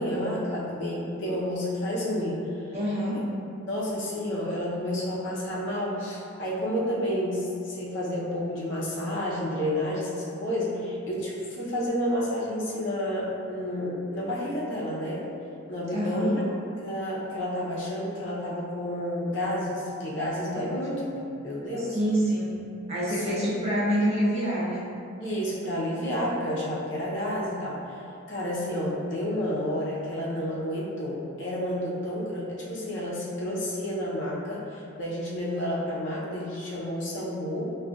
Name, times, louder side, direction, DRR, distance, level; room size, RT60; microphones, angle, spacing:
voice 1, 0.0-2.4 3.7-15.3 15.7-16.4 16.8-22.0 23.1-23.4 25.2-28.0 28.3-37.7, equal, 60° left, -6 dB, 0.7 m, -30 dB
voice 2, 2.7-3.2 15.9-16.4 21.8-24.8, equal, 30° right, -9 dB, 0.8 m, -27 dB
5.1 x 2.4 x 2.3 m, 2.6 s
head